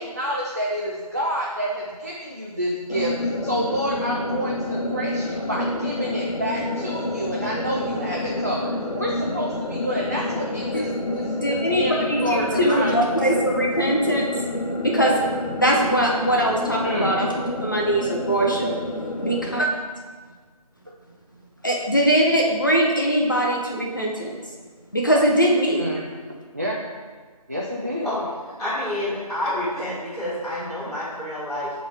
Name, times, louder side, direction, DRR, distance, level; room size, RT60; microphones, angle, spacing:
voice 1, 0.0-3.1 3.4-13.0 16.8-17.1 25.8-26.0 26.5-26.8 27.5-28.1, equal, 25° right, -4 dB, 0.5 m, -28 dB
sound 1, 2.9-19.6, left 2 dB, 70° left, 0.9 m, -28 dB
voice 2, 11.4-14.3 14.8-15.2 15.6-17.3 17.6-18.7 19.2-19.7 21.6-24.3 24.9-25.8, right 1 dB, 30° left, -1 dB, 0.6 m, -21 dB
voice 3, 28.6-31.7, left 1 dB, ahead, -26 dB, 1.3 m, -28 dB
11.0 x 3.9 x 3.3 m, 1.5 s
figure-of-eight pair, 175°, 20 cm